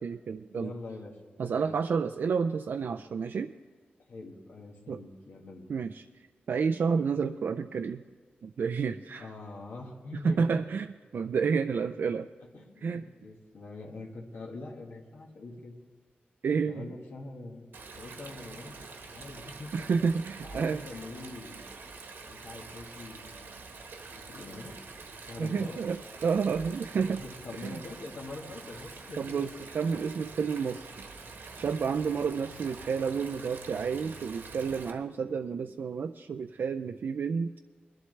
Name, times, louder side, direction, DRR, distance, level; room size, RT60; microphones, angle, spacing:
voice 1, 0.0-0.7 1.4-3.5 4.9-5.0 5.7-8.0 8.4-9.3 10.2-12.3 12.8-13.0 16.4-16.9 19.7-20.8 25.4-27.2 27.6-27.8 29.2-31.1 31.3-37.5, right 5 dB, 65° right, 7 dB, 0.3 m, -30 dB
voice 2, 0.5-1.8 4.1-5.7 9.2-10.6 12.5-15.7 16.7-17.7 18.0-19.9 20.4-21.6 22.3-23.6 24.1-24.8 25.3-25.9 27.0-29.4, left 2 dB, 80° left, -2 dB, 1.8 m, -44 dB
Stream, 17.7-34.9, right 4 dB, 85° right, 1.4 m, -46 dB
21.5 x 11.5 x 3.3 m, 1.5 s
wide cardioid pair, 175°, 4 cm